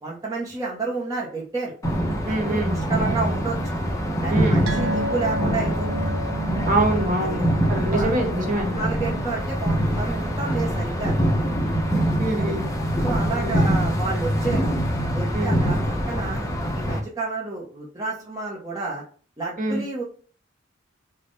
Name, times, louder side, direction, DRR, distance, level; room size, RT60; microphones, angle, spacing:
voice 1, 0.0-1.7 2.3-3.8 4.2-5.9 6.2-6.4 7.2-7.4 7.9-8.1 8.4-8.5 8.7-11.5 12.4-12.6 13.0-14.8 15.1-15.8 16.1-16.4 16.7-19.0 19.4-20.0, right 3 dB, 20° right, -5 dB, 0.7 m, -30 dB
sound 1, 1.8-17.0, equal, 15° left, 0.6 m, -24 dB
voice 2, 2.2-2.7 4.3-4.6 6.7-8.8 11.9-12.7 13.4-13.6 15.3-15.6 19.6-19.8, right 1 dB, 40° right, 1 dB, 1.1 m, -25 dB
sound 2, 4.7-11.5 11.7-12.0 12.3-12.4, equal, 75° right, 0.5 m, -33 dB
3.6 x 2.1 x 3.8 m, 0.42 s
head